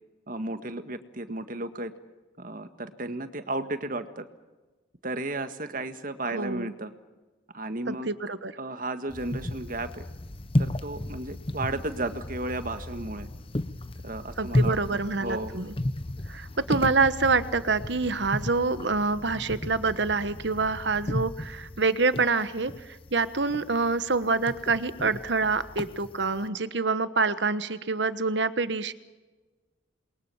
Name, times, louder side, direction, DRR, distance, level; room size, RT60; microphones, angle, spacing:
voice 1, 0.3-1.9 2.4-4.3 5.0-6.9 7.5-8.1 8.6-10.1 10.6-13.3 14.0-15.6, right 2 dB, 45° right, 9 dB, 1.8 m, -34 dB
voice 2, 6.3-6.7 7.9-8.5 14.4-15.7 16.3-28.9, right 4 dB, 65° right, 13 dB, 1.3 m, -26 dB
sound 1, 9.1-26.5, left 1 dB, 30° left, 0.9 m, -34 dB
28.5 x 22.5 x 7.2 m, 1.2 s
head